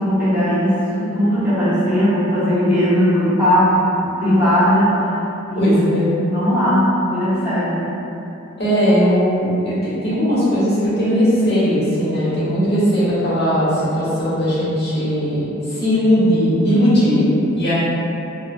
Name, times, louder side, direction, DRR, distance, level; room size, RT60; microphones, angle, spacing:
voice 1, 0.0-5.0 5.5-7.9, equal, 10° right, -14 dB, 1.0 m, -18 dB
voice 2, 5.6-6.0 8.6-17.7, equal, 55° left, -11 dB, 1.2 m, -18 dB
4.0 x 2.2 x 2.4 m, 2.9 s
head